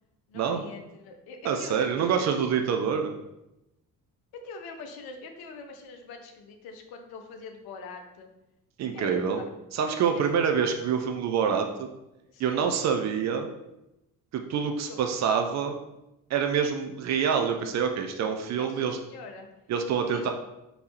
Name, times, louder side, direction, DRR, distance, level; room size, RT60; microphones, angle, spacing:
voice 1, 0.3-2.3 4.3-8.3 8.9-9.5 9.9-10.3 12.3-12.6 14.9-15.0 18.6-19.5 20.1-20.3, left 4 dB, 50° left, 4 dB, 0.7 m, -43 dB
voice 2, 1.4-3.2 8.8-9.4 9.7-11.9 12.4-13.5 14.3-15.8 16.3-19.0 19.7-20.3, right 7 dB, 35° right, 4 dB, 0.5 m, -26 dB
5.2 x 2.7 x 2.9 m, 0.92 s
figure-of-eight pair, 45°, 47 cm